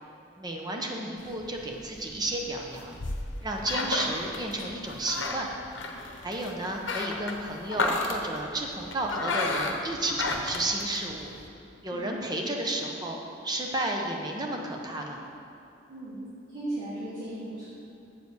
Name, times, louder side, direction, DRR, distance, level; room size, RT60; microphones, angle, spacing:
voice 1, 0.4-3.0 3.4-5.5 6.2-11.3 11.8-15.2, right 1 dB, 20° right, 1 dB, 0.8 m, -32 dB
sound 1, 1.2-11.5, left 3 dB, 80° left, 0.8 m, -33 dB
voice 2, 16.5-17.6, right 1 dB, 70° right, -12 dB, 2.2 m, -36 dB
8.2 x 4.8 x 6.5 m, 2.8 s
head